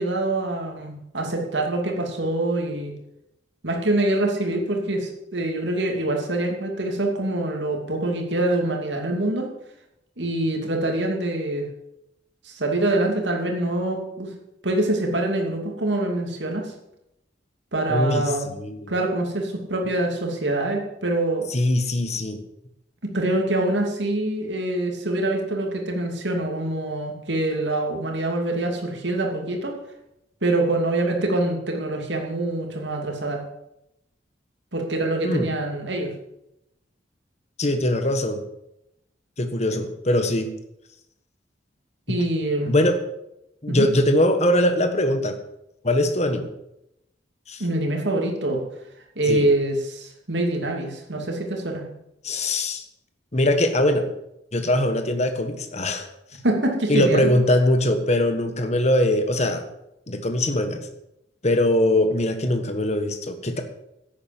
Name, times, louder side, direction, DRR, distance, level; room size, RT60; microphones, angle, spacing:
voice 1, 0.0-2.9 3.6-9.5 10.2-11.7 12.4-14.3 14.6-16.7 17.7-18.5 18.9-21.5 23.1-29.7 30.4-33.4 34.7-36.1 42.1-42.7 43.7-43.9 47.6-48.6 49.2-51.8 56.4-57.3, right 2 dB, 75° right, 2 dB, 2.7 m, -25 dB
voice 2, 17.9-18.2 18.6-18.9 21.5-22.4 35.2-35.5 37.6-38.4 39.4-40.5 42.1-42.2 42.7-43.0 43.6-45.3 45.8-46.5 47.5-47.6 49.3-49.4 52.2-52.8 53.3-54.1 54.5-56.1 56.9-59.6 60.1-60.9 61.4-63.6, left 1 dB, 40° left, 7 dB, 1.4 m, -21 dB
10.5 x 8.9 x 7.7 m, 0.85 s
head